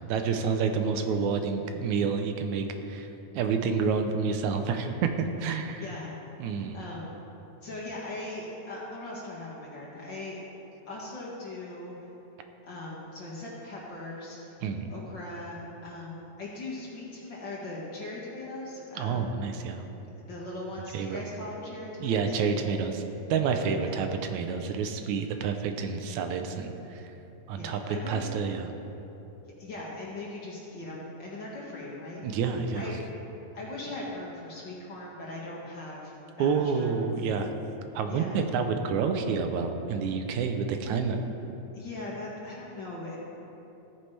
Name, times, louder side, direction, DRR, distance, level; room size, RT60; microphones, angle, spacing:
voice 1, 0.0-3.1 3.4-5.8 6.4-6.8 14.6-14.9 19.0-19.8 20.9-21.2 22.0-23.0 23.3-27.1 27.5-28.7 32.2-32.9 36.4-37.5 38.0-41.2, right 5 dB, 80° right, 6 dB, 2.1 m, -29 dB
voice 2, 5.8-6.1 6.7-7.1 7.6-10.4 10.9-11.9 12.6-14.5 14.9-19.3 20.2-22.6 23.9-24.0 27.6-28.2 29.6-32.4 32.7-33.0 33.5-36.1 36.4-37.1 38.1-38.4 41.7-43.2, left 2 dB, 45° left, -5 dB, 2.1 m, -39 dB
16.0 x 9.3 x 3.3 m, 2.9 s
omnidirectional pair, 3.4 m